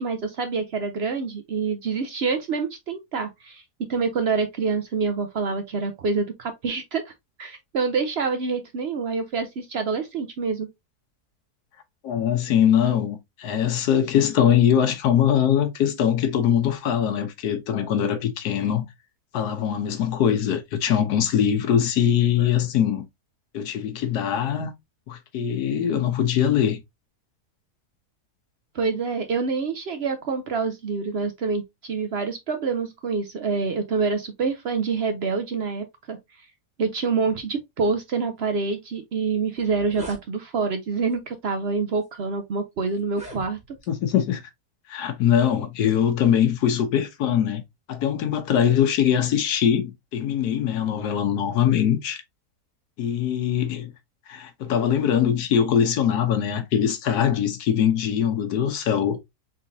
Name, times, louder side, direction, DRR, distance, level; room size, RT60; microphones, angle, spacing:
voice 1, 0.0-3.6 3.9-7.1 7.4-10.7 28.7-36.2 36.8-43.6, right 4 dB, 60° right, 0.7 m, -26 dB
voice 2, 12.0-18.8 19.3-23.1 23.5-24.7 25.1-26.8 43.9-44.4 44.9-47.6 47.9-52.2 53.0-53.9 54.3-59.2, left 9 dB, 80° left, 1.4 m, -22 dB
sound 1, 39.1-39.2 39.5-40.2 41.1-41.3 42.0-42.1 43.0-43.9, right 2 dB, 5° right, 1.2 m, -40 dB
3.9 x 3.8 x 2.6 m
omnidirectional pair, 1.7 m